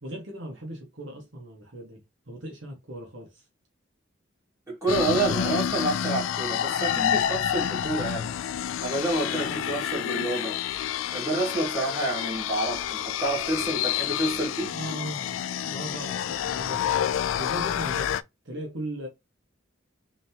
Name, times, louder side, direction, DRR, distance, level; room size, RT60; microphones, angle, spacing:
voice 1, 0.0-3.4 14.7-17.0 17.4-18.1 18.4-19.1, right 1 dB, 70° right, 1.4 m, -38 dB
voice 2, 4.7-8.3 8.8-10.6 11.1-14.7, right 2 dB, 15° right, 2.3 m, -28 dB
sound 1, 4.9-18.2, left 10 dB, 90° left, 0.3 m, -29 dB
3.8 x 3.5 x 2.9 m
head